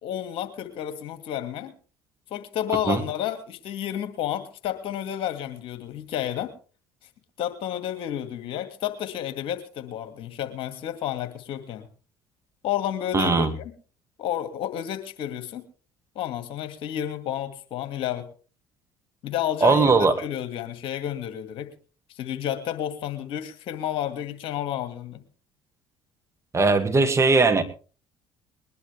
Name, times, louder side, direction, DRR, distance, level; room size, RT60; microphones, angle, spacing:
voice 1, 0.0-1.7 2.3-6.5 7.4-11.9 12.6-13.7 14.2-15.6 16.2-18.2 19.2-19.9 20.2-21.7 22.2-25.2, left 11 dB, 60° left, 8 dB, 2.3 m, -31 dB
voice 2, 13.1-13.5 19.6-20.1 26.5-27.6, right 3 dB, 25° right, 7 dB, 2.2 m, -19 dB
21.5 x 11.0 x 3.5 m, 0.37 s
hypercardioid pair, 65°, 10 cm